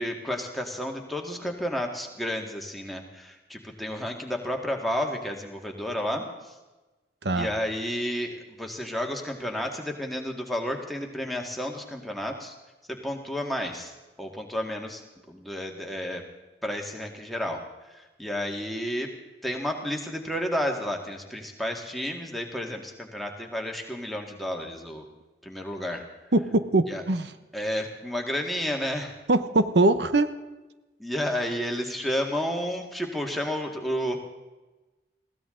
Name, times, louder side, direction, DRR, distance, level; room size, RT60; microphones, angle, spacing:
voice 1, 0.0-6.5 7.3-12.5 12.9-13.9 14.2-15.0 15.3-16.2 16.6-17.6 17.9-19.1 19.4-25.1 25.4-26.0 26.9-27.0 27.5-29.1 31.0-34.2, equal, ahead, 1 dB, 1.9 m, -31 dB
voice 2, 26.3-27.3 29.3-30.3, right 2 dB, 80° right, 11 dB, 0.9 m, -22 dB
21.5 x 16.5 x 3.8 m, 1.1 s
head